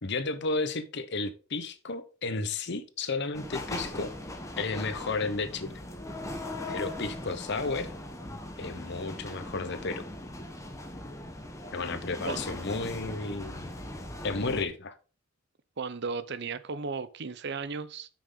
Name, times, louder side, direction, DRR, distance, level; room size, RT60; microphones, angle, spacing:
voice 1, 0.0-4.1 4.6-5.7 6.7-7.9 8.6-10.0 11.7-13.7 14.2-14.9, left 3 dB, 60° left, 1.0 m, -33 dB
sound 1, 3.3-14.6, left 1 dB, 15° left, 1.3 m, -39 dB
voice 2, 15.8-18.1, right 4 dB, 55° right, 0.7 m, -35 dB
8.6 x 6.1 x 3.9 m
head